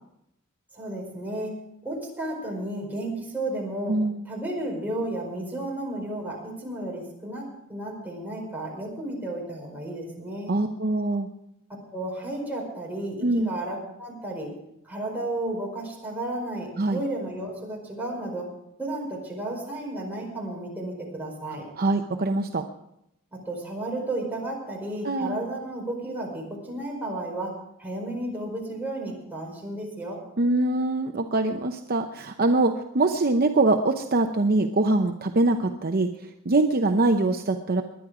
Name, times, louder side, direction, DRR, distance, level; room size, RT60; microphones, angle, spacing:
voice 1, 0.7-1.5 1.8-4.0 4.2-10.5 11.9-14.5 14.8-18.5 18.8-21.7 23.3-30.2, right 1 dB, 10° right, -2 dB, 4.9 m, -33 dB
voice 2, 3.9-4.2 10.5-11.3 13.2-13.5 16.8-17.0 21.8-22.6 25.0-25.4 30.4-36.1 36.4-37.8, right 2 dB, 45° right, 5 dB, 0.8 m, -23 dB
21.5 x 10.0 x 4.9 m, 0.80 s
head